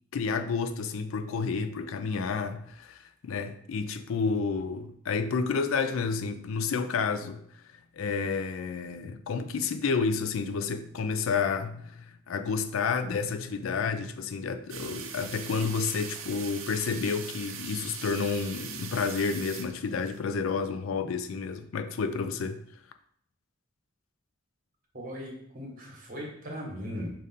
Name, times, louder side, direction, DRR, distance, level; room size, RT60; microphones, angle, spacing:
voice 1, 0.1-7.4 7.9-22.6, left 5 dB, 85° left, 0.4 m, -30 dB
sound 1, 14.7-20.2, right 7 dB, 80° right, 0.5 m, -41 dB
voice 2, 24.9-27.1, equal, 45° right, 1.2 m, -38 dB
5.1 x 2.6 x 4.1 m
head